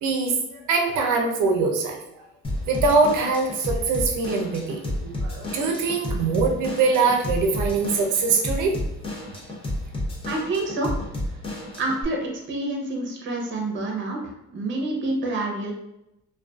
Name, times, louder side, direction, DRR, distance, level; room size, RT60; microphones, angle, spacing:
voice 1, 0.0-2.0 2.7-8.7, right 4 dB, 75° right, 2 dB, 0.5 m, -23 dB
Drum kit / Drum, 2.4-12.0, left 1 dB, 20° left, 0.7 m, -31 dB
voice 2, 10.3-10.9 11.8-14.2 14.5-15.7, right 2 dB, 40° right, 0 dB, 0.7 m, -27 dB
2.4 x 2.3 x 2.3 m, 0.86 s
cardioid pair, 90°, 30 cm